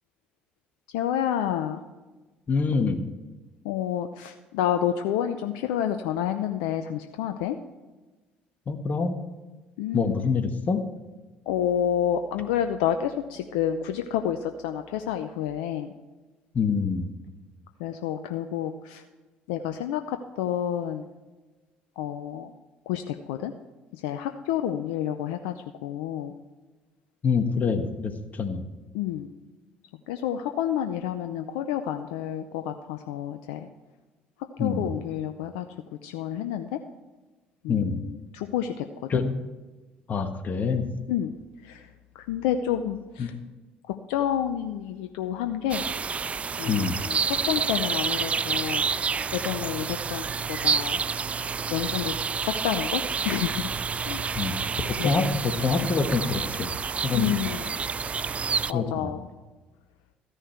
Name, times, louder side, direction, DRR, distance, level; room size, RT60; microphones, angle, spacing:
voice 1, 0.9-1.8 3.6-7.6 9.8-10.2 11.5-15.9 17.8-19.0 19.5-21.1 22.0-22.5 22.9-23.5 23.9-26.3 28.9-29.3 30.1-33.7 34.6-35.7 36.0-36.8 37.6-39.2 41.1-41.3 41.6-41.9 42.1-43.3 43.9-45.8 46.6-51.0 51.7-52.2 52.4-53.7 54.0-54.3 55.0-55.1 55.8-55.9 57.1-57.7 58.7-59.3, left 10 dB, 75° left, 8 dB, 0.6 m, -29 dB
voice 2, 2.5-3.1 8.7-9.2 9.9-10.8 16.5-17.1 27.2-28.6 34.6-34.9 37.7-38.0 39.1-39.4 40.1-40.9 43.2-43.3 46.7-47.0 54.3-54.6 54.9-56.7 57.0-57.5 58.7-59.1, left 5 dB, 40° left, 7 dB, 1.4 m, -26 dB
sound 1, 45.7-58.7, right 5 dB, 30° right, 0.4 m, -29 dB
14.0 x 9.9 x 4.5 m, 1.2 s
hypercardioid pair, 60°, 4 cm